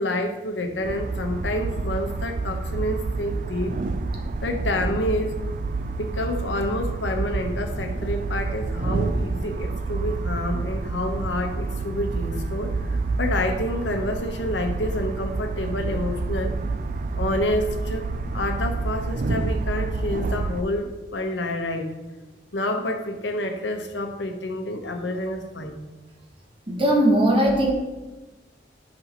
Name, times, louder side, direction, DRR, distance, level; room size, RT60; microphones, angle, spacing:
voice 1, 0.0-3.8 4.4-5.4 6.0-16.6 17.2-18.0 18.3-21.9 22.5-25.8, left 1 dB, 90° left, 4 dB, 1.0 m, -28 dB
sound 1, 0.8-20.6, right 3 dB, 45° right, 0.4 m, -28 dB
voice 2, 26.7-27.7, right 1 dB, 30° right, -1 dB, 1.3 m, -19 dB
10.5 x 5.5 x 3.0 m, 1.2 s
head